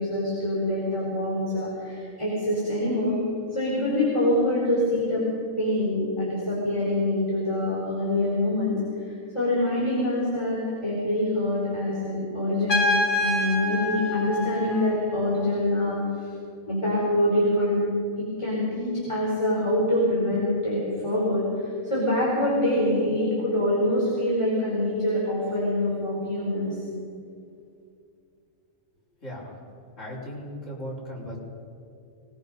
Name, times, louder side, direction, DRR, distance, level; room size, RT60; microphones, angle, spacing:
voice 1, 0.0-3.2 3.5-5.2 5.6-12.8 13.2-16.3 16.7-17.9 18.2-26.8, left 1 dB, 20° left, -6 dB, 4.6 m, -25 dB
Trumpet, 12.7-15.3, left 1 dB, 85° left, 3.7 m, -27 dB
voice 2, 29.2-29.5 30.0-31.4, equal, 60° left, -6 dB, 5.4 m, -37 dB
25.0 x 19.5 x 5.5 m, 2.5 s
omnidirectional pair, 1.4 m